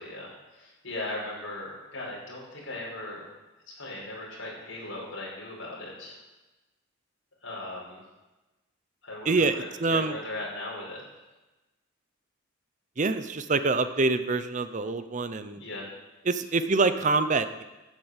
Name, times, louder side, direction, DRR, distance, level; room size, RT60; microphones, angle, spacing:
voice 1, 0.0-3.3 3.7-6.2 7.4-8.0 9.0-11.0 15.5-15.9, left 2 dB, 80° left, -4 dB, 5.6 m, -38 dB
voice 2, 9.3-10.2 13.0-15.6 16.3-17.6, right 3 dB, 40° right, 11 dB, 0.7 m, -26 dB
11.5 x 8.4 x 8.2 m, 1.1 s
head